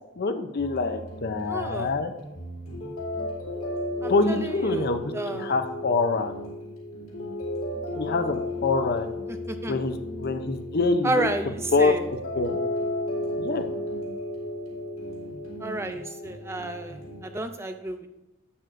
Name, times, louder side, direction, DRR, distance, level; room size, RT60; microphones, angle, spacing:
voice 1, 0.2-2.1 4.1-5.0 5.3-6.3 8.0-9.1 9.7-11.3 11.7-11.9 12.3-12.6 13.4-13.6, left 3 dB, 50° left, 8 dB, 0.6 m, -25 dB
sound 1, 0.6-17.4, left 1 dB, 75° left, 2.5 m, -34 dB
voice 2, 1.5-1.9 4.0-4.9 5.1-5.6 9.3-9.8 11.0-12.0 15.6-18.1, right 2 dB, 10° right, 8 dB, 0.4 m, -31 dB
11.0 x 7.7 x 2.6 m, 0.98 s
head